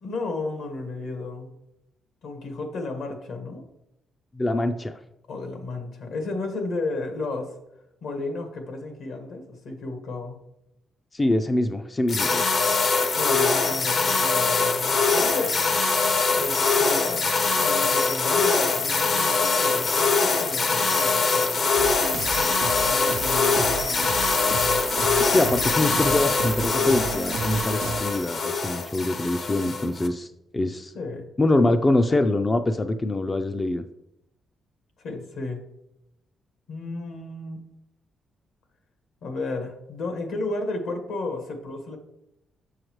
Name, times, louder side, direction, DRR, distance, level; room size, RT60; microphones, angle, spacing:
voice 1, 0.0-1.5 2.2-3.6 5.3-7.5 8.0-10.4 13.2-15.6 16.4-17.3 17.6-21.6 22.8-23.9 30.9-31.3 35.0-35.6 36.7-37.6 39.2-42.0, left 3 dB, 75° left, 4 dB, 1.4 m, -33 dB
voice 2, 4.4-5.0 11.1-12.8 25.3-30.3 30.5-30.9 31.4-33.8, left 2 dB, 20° left, 8 dB, 0.3 m, -24 dB
sound 1, 12.1-30.1, left 4 dB, 50° left, 0.7 m, -23 dB
sound 2, 21.8-28.0, right 6 dB, 65° right, 0.3 m, -33 dB
7.0 x 6.4 x 3.1 m, 0.84 s
cardioid pair, 110°, 0 cm